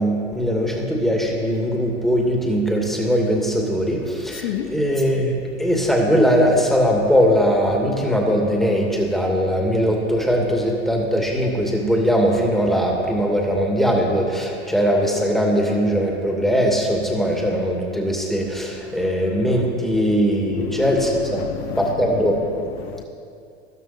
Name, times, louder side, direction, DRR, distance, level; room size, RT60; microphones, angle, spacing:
voice 1, 0.0-5.3 5.6-21.4 21.8-22.3, equal, ahead, -1 dB, 2.5 m, -20 dB
voice 2, 4.3-4.8 18.8-19.1 19.8-20.0 20.5-23.0, left 10 dB, 65° left, 8 dB, 0.8 m, -31 dB
14.0 x 12.5 x 4.4 m, 2.5 s
hypercardioid pair, 90°, 33 cm